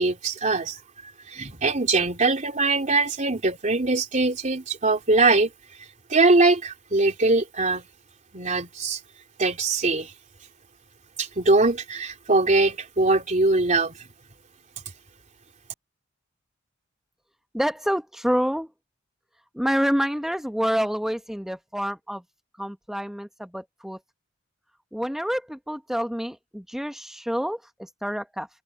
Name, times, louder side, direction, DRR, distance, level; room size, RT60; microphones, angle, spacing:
voice 1, 0.0-5.5 6.1-7.8 8.3-9.0 9.4-10.1 11.2-13.9, right 3 dB, 35° right, 3.1 m, -22 dB
voice 2, 17.5-18.7 19.5-22.2 22.6-24.0 24.9-28.5, equal, ahead, 1.1 m, -27 dB
head